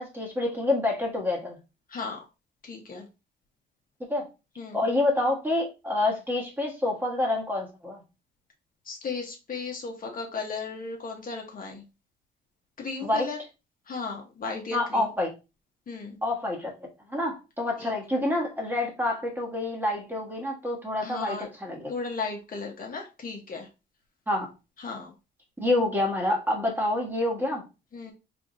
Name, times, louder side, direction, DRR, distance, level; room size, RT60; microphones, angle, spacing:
voice 1, 0.0-1.6 4.1-4.3 4.7-8.0 13.0-13.3 14.7-15.3 16.2-16.7 17.1-21.9 24.3-24.5 25.6-27.6, left 2 dB, 10° right, 0 dB, 1.3 m, -27 dB
voice 2, 1.9-2.2 2.6-3.0 4.6-4.9 8.8-11.8 12.8-13.4 13.9-15.1 15.9-16.2 17.8-17.9 21.0-21.5 21.9-23.7 24.8-25.1 27.9-28.1, left 4 dB, 45° left, 1 dB, 1.0 m, -35 dB
3.5 x 3.4 x 2.6 m, 0.28 s
cardioid pair, 90°, 20 cm